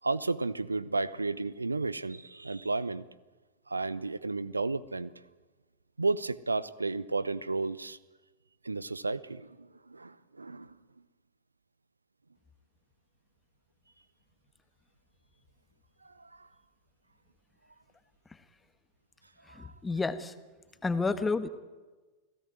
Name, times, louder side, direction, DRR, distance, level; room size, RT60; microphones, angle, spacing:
voice 1, 0.0-3.0 3.7-5.1 6.0-8.0 8.6-10.7 16.0-16.5 19.5-19.7, right 3 dB, 80° right, 20 dB, 0.8 m, -33 dB
voice 2, 19.6-20.3 20.8-21.5, left 3 dB, 10° left, 11 dB, 1.6 m, -30 dB
29.5 x 17.5 x 9.3 m, 1.3 s
figure-of-eight pair, 90°, 0 cm